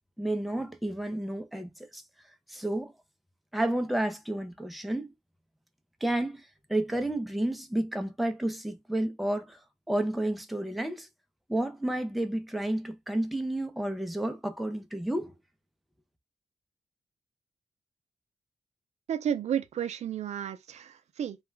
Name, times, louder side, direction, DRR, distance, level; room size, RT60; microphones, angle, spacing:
voice 1, 0.2-2.0 2.5-2.9 3.5-5.1 6.0-6.4 6.7-9.6 9.9-11.1 11.5-15.3, right 1 dB, ahead, 0.4 m, -31 dB
voice 2, 19.1-21.4, right 9 dB, 70° right, 0.4 m, -32 dB
2.3 x 2.1 x 3.1 m
cardioid pair, 95°, 12 cm